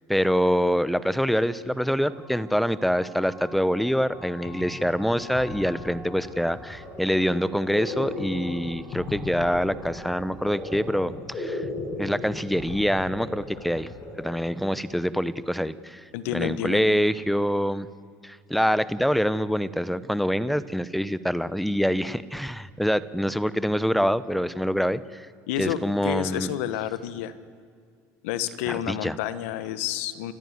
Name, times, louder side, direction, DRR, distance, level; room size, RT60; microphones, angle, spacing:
voice 1, 0.1-11.6 12.0-13.9 14.2-16.0 16.3-17.9 18.2-25.3 25.6-26.5 28.7-29.2, equal, ahead, 16 dB, 0.8 m, -25 dB
sound 1, 1.9-11.0, equal, 25° right, 5.9 m, -48 dB
sound 2, 4.2-4.3 4.4-15.0, left 3 dB, 40° left, 6.9 m, -37 dB
voice 2, 16.1-17.1 25.5-27.3 28.2-30.3, left 11 dB, 90° left, 14 dB, 1.3 m, -30 dB
29.5 x 14.0 x 9.7 m, 2.2 s
supercardioid pair, 115°, 7 cm